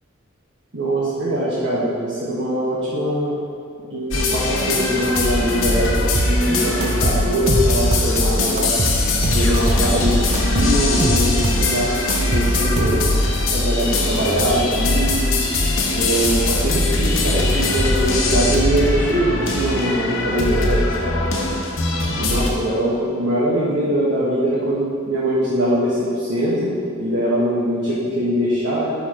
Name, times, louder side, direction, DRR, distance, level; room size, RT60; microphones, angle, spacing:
voice 1, 0.7-3.4 3.8-8.7 9.3-11.9 12.2-13.1 13.5-15.2 15.9-21.2 22.2-28.9, equal, 65° right, -8 dB, 1.3 m, -22 dB
sound 1, 4.1-22.5, left 2 dB, 90° left, 1.0 m, -21 dB
sound 2, 6.1-6.4 6.8-8.2 8.6-9.9 10.3-11.7 12.1-13.3, right 2 dB, 35° right, 0.5 m, -23 dB
6.8 x 5.7 x 4.3 m, 2.4 s
head